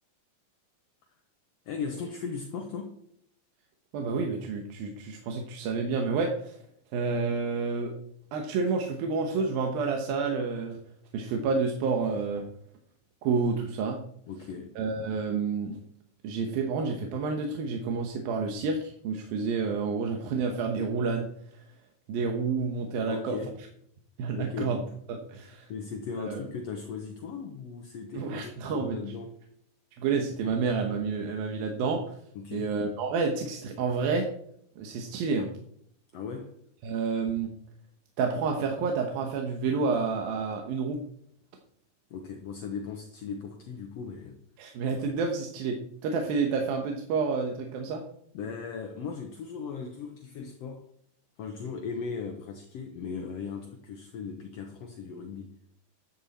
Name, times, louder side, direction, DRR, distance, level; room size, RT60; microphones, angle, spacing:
voice 1, 1.6-3.0 14.3-14.8 23.1-23.6 24.3-24.9 25.7-29.4 32.3-32.7 36.1-36.6 42.1-44.4 48.3-50.9 51.4-55.6, left 5 dB, 65° left, 1.7 m, -38 dB
voice 2, 3.9-6.6 6.9-7.9 8.3-10.8 11.1-12.5 13.2-14.0 14.8-15.8 16.2-21.7 22.1-23.4 24.2-24.8 25.1-25.7 26.2-26.4 28.1-29.0 30.0-32.2 32.5-34.3 34.8-35.5 36.8-37.5 38.2-41.0 44.6-48.0, right 4 dB, 90° right, 3.1 m, -29 dB
13.5 x 11.0 x 4.2 m
omnidirectional pair, 4.0 m